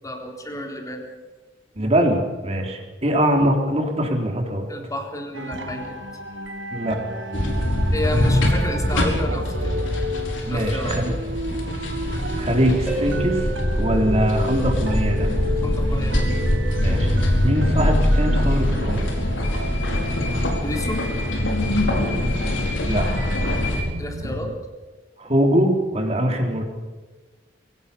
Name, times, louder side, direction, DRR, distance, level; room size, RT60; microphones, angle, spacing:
voice 1, 0.0-1.0 4.7-5.9 7.9-9.8 10.5-11.0 15.6-16.3 20.6-21.0 24.0-24.5, left 1 dB, 20° left, 2 dB, 3.6 m, -30 dB
voice 2, 1.8-4.7 6.7-7.0 10.5-11.1 12.3-13.5 13.8-15.3 16.8-17.2 17.4-19.1 22.9-23.0 25.2-26.6, equal, 35° right, 2 dB, 3.6 m, -22 dB
sound 1, 5.3-22.8 23.1-24.6, right 1 dB, 70° right, 1.6 m, -33 dB
sound 2, 7.3-23.8, left 1 dB, 85° left, 4.6 m, -23 dB
Harp, 12.9-15.4 18.9-19.0, right 2 dB, 5° right, 4.2 m, -34 dB
23.0 x 17.5 x 7.0 m, 1.3 s
head